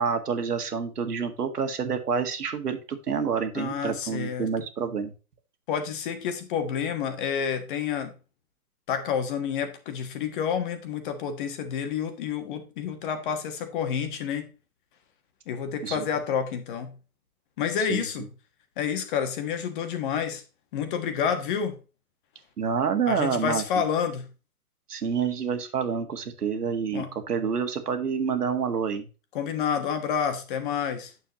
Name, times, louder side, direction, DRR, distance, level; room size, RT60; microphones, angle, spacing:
voice 1, 0.0-5.1 15.8-16.1 17.9-18.1 22.6-23.6 24.9-29.1, right 6 dB, 80° right, 1.9 m, -28 dB
voice 2, 3.5-4.5 5.7-8.1 8.9-14.5 15.5-17.0 17.6-18.3 18.8-20.4 20.7-21.8 23.1-24.3 26.9-27.1 29.3-31.1, left 7 dB, 35° left, 1.4 m, -29 dB
9.0 x 6.8 x 2.9 m
hypercardioid pair, 145°, 46 cm